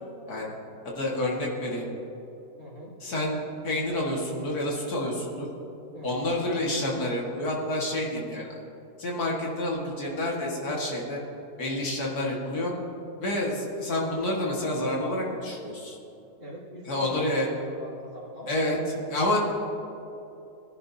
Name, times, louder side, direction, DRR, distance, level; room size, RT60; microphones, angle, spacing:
voice 1, 0.8-1.9 3.0-5.5 6.0-8.6 9.0-11.2 11.6-12.7 13.2-16.0 16.9-17.5 18.5-18.8 19.1-19.4, left 1 dB, 70° left, -3 dB, 2.3 m, -28 dB
voice 2, 2.6-3.0 5.9-6.2 16.4-18.8 19.1-19.2, equal, 35° right, -11 dB, 2.8 m, -43 dB
19.5 x 11.0 x 2.8 m, 2.9 s
omnidirectional pair, 1.7 m